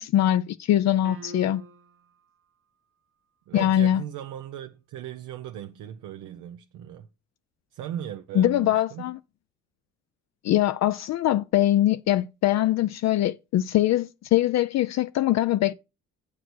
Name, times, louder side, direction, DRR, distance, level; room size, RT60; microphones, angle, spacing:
voice 1, 0.0-1.6 3.5-4.0 8.4-9.2 10.4-15.7, left 13 dB, 60° left, 0.5 m, -22 dB
sound 1, 1.0-2.1, equal, 45° right, 0.9 m, -43 dB
voice 2, 3.5-7.1 7.7-9.1, right 11 dB, 90° right, 0.7 m, -38 dB
8.0 x 4.8 x 6.1 m
cardioid pair, 100°, 30 cm